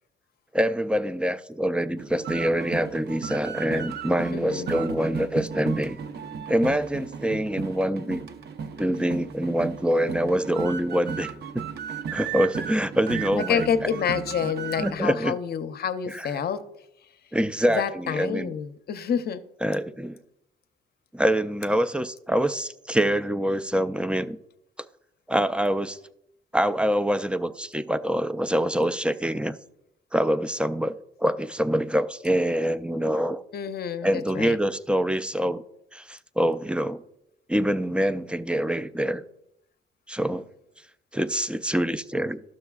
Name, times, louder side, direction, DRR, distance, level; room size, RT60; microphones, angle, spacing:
voice 1, 0.5-6.0 6.5-8.2 8.8-11.3 12.1-13.9 14.8-15.4 16.1-16.3 17.3-18.5 19.6-20.2 21.1-24.4 25.3-26.0 26.5-29.6 30.1-33.4 34.0-35.6 35.9-37.0 37.5-39.2 40.1-40.4 41.1-42.4, equal, 5° right, 0.3 m, -25 dB
sound 1, 2.0-14.9, right 6 dB, 55° right, 0.6 m, -35 dB
voice 2, 4.3-4.7 13.5-16.6 17.7-19.4 33.5-34.6, left 8 dB, 55° left, 0.6 m, -28 dB
12.0 x 6.5 x 2.3 m
cardioid pair, 90°, 20 cm